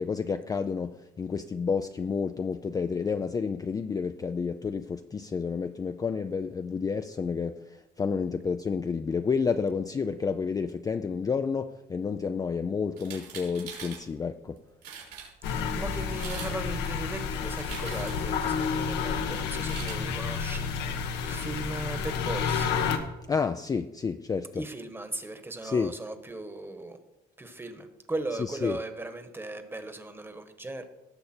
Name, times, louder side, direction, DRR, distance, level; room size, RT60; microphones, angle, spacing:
voice 1, 0.0-14.6 23.3-24.6 25.6-25.9 28.6-28.8, left 5 dB, 20° left, 0.4 m, -30 dB
sound 1, 12.9-14.0 14.6-14.7 14.8-15.3 16.0-16.6 16.8-18.3 19.5-20.0, right 7 dB, 85° right, 4.2 m, -42 dB
sound 2, 15.4-23.0, left 6 dB, 85° left, 1.2 m, -30 dB
voice 2, 15.5-22.8 24.5-27.0 27.4-30.8, right 2 dB, 15° right, 1.3 m, -38 dB
18.0 x 6.8 x 4.4 m
cardioid pair, 110°, 17 cm